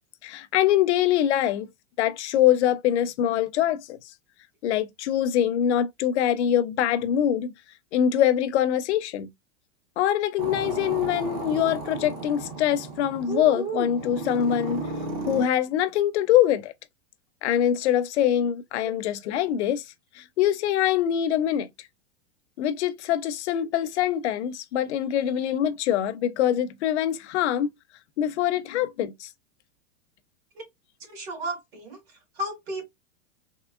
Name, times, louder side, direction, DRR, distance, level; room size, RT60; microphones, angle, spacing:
voice 1, 0.2-1.7 2.0-4.0 4.6-7.5 7.9-9.3 10.0-14.9 15.3-16.7 17.4-19.8 20.2-21.7 22.6-27.7 28.2-29.3, left 11 dB, 60° left, 0.5 m, -24 dB
sound 1, 10.4-15.5, right 3 dB, 30° right, 0.6 m, -33 dB
voice 2, 31.0-32.8, equal, 50° right, 2.1 m, -34 dB
3.6 x 2.7 x 2.4 m
supercardioid pair, 170°, 39 cm